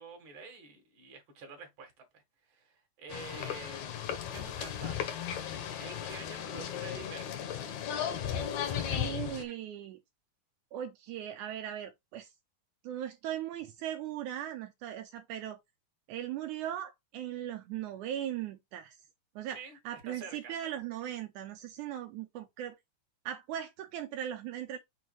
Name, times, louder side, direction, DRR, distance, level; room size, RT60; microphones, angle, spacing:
voice 1, 0.0-5.2 5.8-7.5 8.7-9.0 19.5-20.5, right 4 dB, 45° right, 1.8 m, -48 dB
sound 1, 3.1-9.4, left 9 dB, 65° left, 2.0 m, -36 dB
voice 2, 8.9-10.0 10.7-12.3 12.8-15.6 16.1-19.0 19.3-22.8 23.2-24.8, right 11 dB, 85° right, 1.7 m, -39 dB
6.2 x 3.2 x 4.7 m
omnidirectional pair, 4.3 m